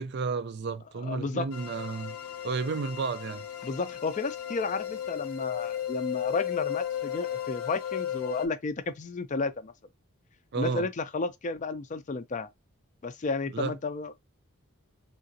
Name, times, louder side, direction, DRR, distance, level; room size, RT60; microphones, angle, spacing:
voice 1, 0.0-2.2 2.4-3.5 10.5-10.9 13.5-13.8, right 4 dB, 50° right, 0.4 m, -32 dB
voice 2, 1.0-1.5 3.6-9.7 10.5-12.5 13.0-14.1, left 3 dB, 35° left, 0.4 m, -32 dB
sound 1, 1.5-8.5, left 10 dB, 80° left, 0.7 m, -35 dB
3.7 x 2.4 x 2.7 m
head